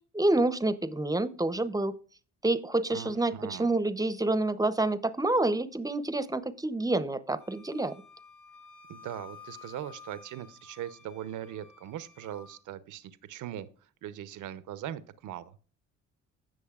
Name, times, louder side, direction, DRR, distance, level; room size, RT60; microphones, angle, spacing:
voice 1, 0.1-2.0 2.4-7.9, right 2 dB, 10° right, 14 dB, 0.7 m, -28 dB
voice 2, 2.9-3.7 8.9-13.7 14.0-15.5, right 11 dB, 80° right, 14 dB, 0.8 m, -40 dB
Wind instrument woodwind instrument, 7.4-12.6, left 5 dB, 90° left, 2.5 m, -52 dB
16.0 x 6.3 x 2.4 m, 0.41 s
cardioid pair, 90°, 30 cm